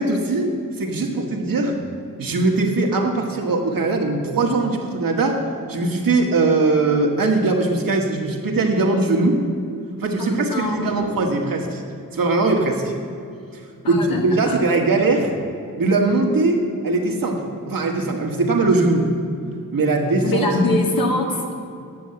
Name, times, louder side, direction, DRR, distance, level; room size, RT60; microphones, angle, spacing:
voice 1, 0.0-1.7 2.2-5.4 5.7-9.4 10.0-11.8 12.1-12.9 13.5-13.6 13.9-15.3 15.8-19.1 19.7-20.5, right 3 dB, 75° right, 1 dB, 1.7 m, -20 dB
voice 2, 10.2-11.1 13.8-14.6 20.2-21.5, left 2 dB, 85° left, 1 dB, 1.9 m, -23 dB
10.5 x 7.1 x 7.9 m, 2.5 s
wide cardioid pair, 80°, 34 cm